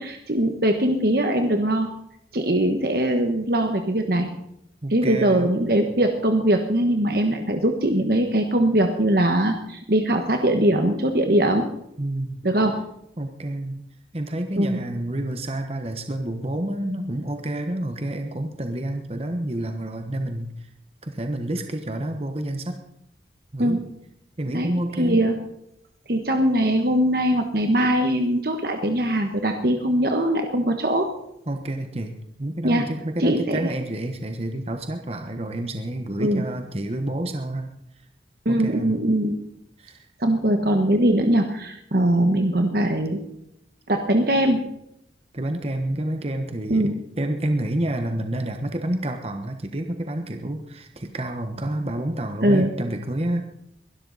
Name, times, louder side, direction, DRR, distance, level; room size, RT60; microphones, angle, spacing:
voice 1, 0.0-1.9 2.3-4.3 4.9-11.6 12.4-12.8 14.6-14.8 23.6-23.8 24.5-24.7 25.0-25.4 26.1-31.1 32.6-32.9 33.2-33.7 36.2-36.4 38.4-39.3 40.2-43.2 43.9-44.6 46.7-46.9 52.4-52.7, right 1 dB, 55° right, 5 dB, 1.3 m, -21 dB
voice 2, 4.8-5.5 12.0-12.4 13.2-13.8 14.1-20.7 21.0-22.8 23.5-23.9 24.4-25.2 27.8-27.9 31.5-37.7 38.5-39.0 39.8-40.1 45.3-46.9 47.2-53.4, right 1 dB, 35° right, 6 dB, 1.2 m, -29 dB
22.5 x 12.5 x 4.1 m, 0.77 s
head